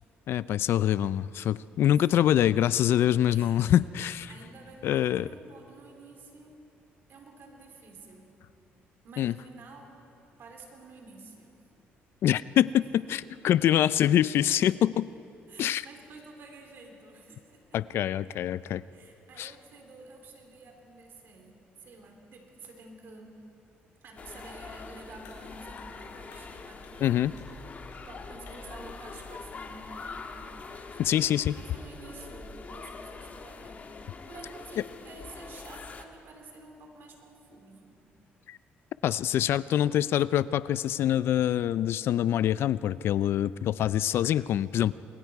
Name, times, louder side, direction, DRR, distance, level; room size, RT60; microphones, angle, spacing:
voice 1, 0.3-4.3 4.8-5.3 9.2-9.3 12.2-15.1 15.6-15.8 17.7-18.8 19.4-19.5 27.0-27.3 31.0-31.6 38.5-38.6 39.0-44.9, left 11 dB, 65° left, 17 dB, 0.4 m, -25 dB
voice 2, 1.8-2.6 3.3-3.7 4.0-6.6 7.1-8.4 9.0-10.0 10.4-11.6 13.1-13.4 15.5-17.8 18.9-23.4 24.0-27.2 27.9-31.2 31.6-38.0, right 3 dB, 60° right, 2 dB, 4.0 m, -50 dB
sound 1, 24.2-36.0, left 4 dB, 40° left, 1.5 m, -44 dB
sound 2, 25.2-32.6, left 1 dB, 85° left, 3.6 m, -53 dB
28.0 x 21.5 x 4.7 m, 2.9 s
cardioid pair, 100°, 4 cm